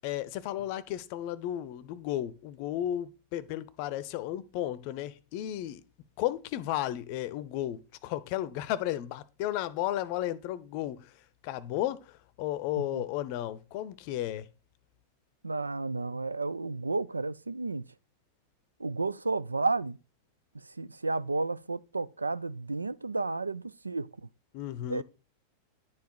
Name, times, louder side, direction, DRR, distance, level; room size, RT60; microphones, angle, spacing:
voice 1, 0.0-5.8 6.2-11.1 11.4-14.5 24.5-25.0, left 13 dB, 45° left, 0.6 m, -34 dB
voice 2, 15.4-17.9 18.8-20.0 20.5-24.1 24.9-25.0, right 3 dB, 80° right, 0.3 m, -32 dB
10.5 x 4.6 x 4.5 m
figure-of-eight pair, 90°, 0 cm